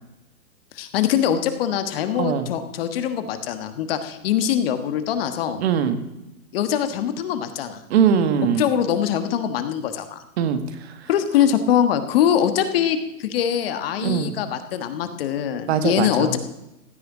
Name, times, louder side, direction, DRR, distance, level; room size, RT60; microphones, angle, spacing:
voice 1, 0.7-5.6 6.5-7.8 8.6-10.2 11.1-16.4, left 9 dB, 40° left, 9 dB, 1.4 m, -23 dB
voice 2, 5.6-6.0 7.9-8.6 10.4-10.6 14.0-14.3 15.7-16.3, right 8 dB, 45° right, 10 dB, 1.6 m, -21 dB
16.0 x 6.7 x 9.9 m, 0.92 s
hypercardioid pair, 150°, 45 cm